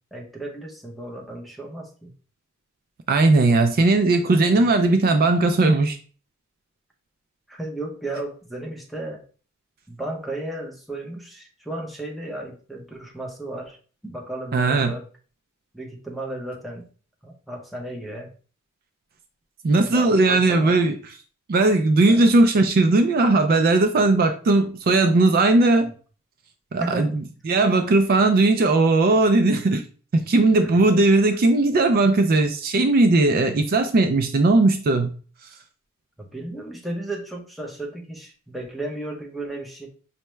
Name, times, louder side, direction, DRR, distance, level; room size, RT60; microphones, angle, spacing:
voice 1, 0.1-2.1 4.5-4.7 7.5-9.2 9.9-13.8 14.0-15.0 15.7-16.9 17.2-18.3 19.8-20.8 22.1-22.3 26.8-27.1 30.7-30.8 36.2-39.9, right 1 dB, ahead, -1 dB, 0.7 m, -34 dB
voice 2, 3.1-6.0 14.5-14.9 19.6-20.9 21.5-25.9 26.7-29.8 30.1-35.1, right 2 dB, 45° right, 7 dB, 0.4 m, -18 dB
5.5 x 2.2 x 3.1 m, 0.39 s
head